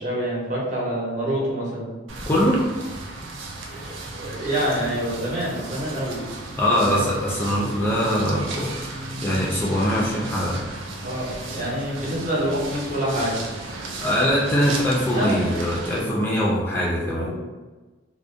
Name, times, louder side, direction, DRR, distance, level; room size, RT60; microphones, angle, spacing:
voice 1, 0.0-1.9 3.7-6.2 6.8-7.1 11.0-13.4 15.1-15.5 17.1-17.4, right 1 dB, 40° right, -5 dB, 0.8 m, -27 dB
sound 1, 2.1-16.0, right 2 dB, 90° right, 0.4 m, -35 dB
voice 2, 2.3-2.6 6.6-10.6 14.0-17.3, equal, 10° left, -5 dB, 0.3 m, -22 dB
2.4 x 2.1 x 2.6 m, 1.2 s
head